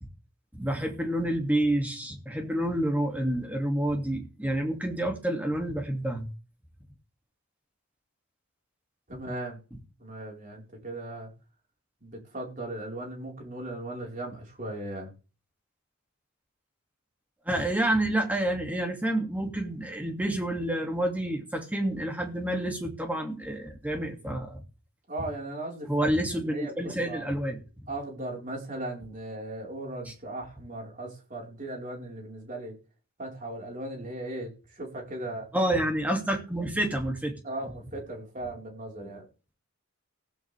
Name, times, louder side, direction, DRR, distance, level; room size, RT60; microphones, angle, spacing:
voice 1, 0.5-6.3 17.5-24.6 25.9-27.6 35.5-37.3, right 1 dB, 5° right, 2 dB, 2.4 m, -28 dB
voice 2, 9.1-9.6 10.0-11.3 12.0-15.1 25.1-25.9 26.3-27.3 27.9-32.8 33.2-35.5 37.4-39.3, right 1 dB, 35° right, 0 dB, 4.6 m, -37 dB
15.5 x 14.5 x 3.5 m, 0.35 s
head